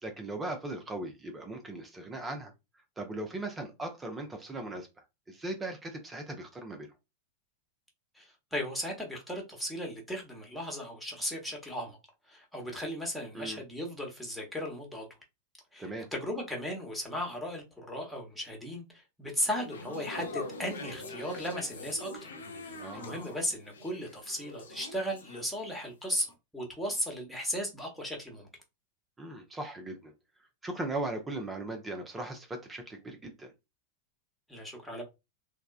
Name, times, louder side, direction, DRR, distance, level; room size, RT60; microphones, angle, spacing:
voice 1, 0.0-2.5 3.0-4.9 5.3-6.9 13.3-13.6 15.8-16.1 22.8-23.4 29.2-30.1 30.6-33.5, right 2 dB, 15° right, 0.6 m, -38 dB
voice 2, 8.2-12.0 12.3-15.0 15.7-22.3 22.9-26.3 26.5-28.5 34.5-35.0, equal, ahead, 1.1 m, -36 dB
sound 1, 19.5-25.8 26.1-26.3, left 2 dB, 70° left, 0.6 m, -44 dB
3.5 x 2.1 x 2.4 m
figure-of-eight pair, 90°, 0 cm